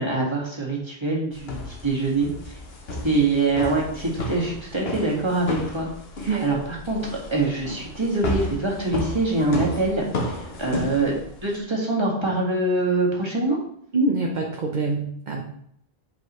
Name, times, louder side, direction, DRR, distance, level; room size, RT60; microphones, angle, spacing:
voice 1, 0.0-2.5 3.0-5.9 6.2-6.6 6.9-10.0 10.4-13.6, right 2 dB, 25° right, -3 dB, 1.8 m, -24 dB
sound 1, 1.3-11.6, left 2 dB, 70° left, 1.2 m, -33 dB
voice 2, 13.9-15.4, right 3 dB, 50° right, 0 dB, 1.0 m, -24 dB
8.4 x 5.3 x 3.1 m, 0.70 s
omnidirectional pair, 1.1 m